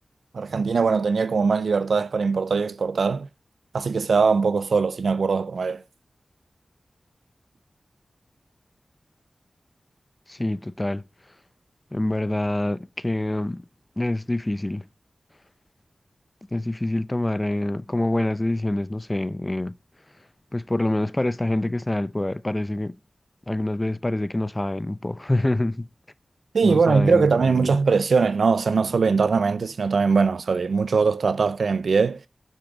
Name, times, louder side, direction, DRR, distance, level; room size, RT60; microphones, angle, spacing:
voice 1, 0.3-3.3 3.7-5.8 26.5-32.2, right 5 dB, 90° right, 0.5 m, -21 dB
voice 2, 10.3-11.0 11.9-13.6 14.0-14.8 16.5-19.8 20.5-22.9 23.5-25.9 26.6-27.7, left 1 dB, 20° left, 0.6 m, -26 dB
10.5 x 6.0 x 5.0 m
wide cardioid pair, 65°, 0 cm